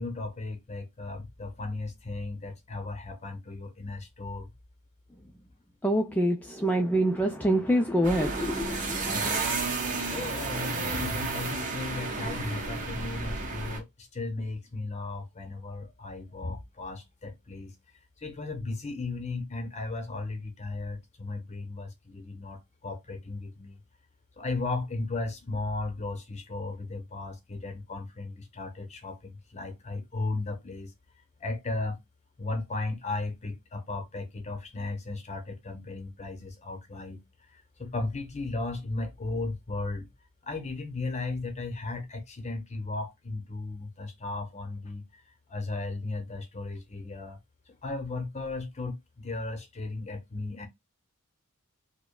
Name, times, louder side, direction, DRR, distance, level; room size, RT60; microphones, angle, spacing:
voice 1, 0.0-4.5 9.1-9.5 10.1-17.8 18.2-23.8 24.4-30.9 31.4-32.0 32.4-37.2 37.8-40.1 40.4-45.1 45.5-47.4 47.8-50.7, left 3 dB, 30° left, 0.8 m, -35 dB
voice 2, 5.8-9.0, right 1 dB, 5° left, 0.4 m, -26 dB
sound 1, 8.0-13.8, right 3 dB, 35° right, 1.1 m, -32 dB
4.9 x 2.2 x 2.2 m
head